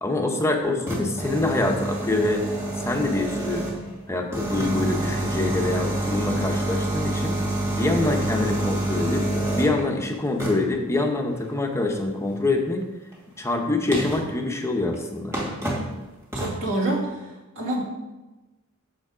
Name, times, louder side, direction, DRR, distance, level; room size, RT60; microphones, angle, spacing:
voice 1, 0.0-2.4 2.8-3.7 4.1-7.4 7.7-9.3 9.5-12.8 13.4-15.4, left 2 dB, 10° left, 3 dB, 0.9 m, -25 dB
sound 1, 0.6-3.9 4.3-9.8 10.4-10.8 13.1-13.2 13.9-14.3 14.9-15.0 15.3-15.9 16.3-16.6, right 1 dB, 15° right, 2.3 m, -27 dB
voice 2, 16.3-17.8, right 1 dB, 60° right, -4 dB, 2.4 m, -27 dB
7.0 x 6.9 x 5.0 m, 1.1 s
head